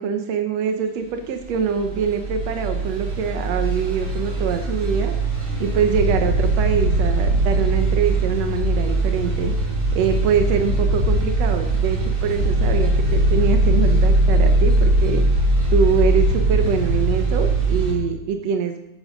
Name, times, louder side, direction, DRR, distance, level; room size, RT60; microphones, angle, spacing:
voice 1, 0.0-5.2 5.6-9.5 9.9-15.2 15.7-18.8, right 7 dB, 70° right, 6 dB, 1.6 m, -24 dB
sound 1, 1.4-17.9, right 1 dB, 35° right, 6.1 m, -20 dB
15.5 x 11.5 x 5.4 m, 0.85 s
omnidirectional pair, 4.5 m